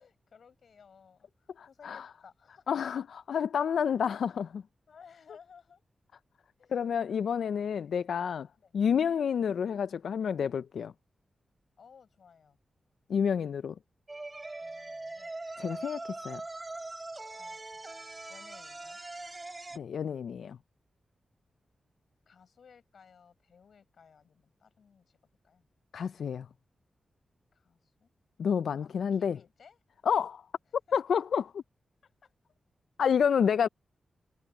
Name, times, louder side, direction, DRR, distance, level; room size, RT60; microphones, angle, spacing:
voice 1, 0.0-2.7 4.9-5.8 6.6-6.8 8.6-8.7 9.3-9.4 11.8-12.6 14.6-15.3 17.4-17.6 18.3-19.0 22.3-25.2 25.4-25.7 27.5-28.1 28.7-29.8 30.9-31.0 32.0-32.3, left 6 dB, 60° left, 7.1 m, -58 dB
voice 2, 1.6-2.1 2.7-3.0 3.3-4.6 6.7-8.5 8.7-10.9 13.1-13.7 15.6-16.0 16.2-16.4 19.8-20.6 25.9-26.5 28.4-29.4 30.1-30.4 30.9-31.6 33.0-33.7, left 7 dB, 85° left, 0.3 m, -29 dB
sound 1, 14.1-19.8, right 2 dB, 20° right, 2.9 m, -42 dB
wide cardioid pair, 180°, 0 cm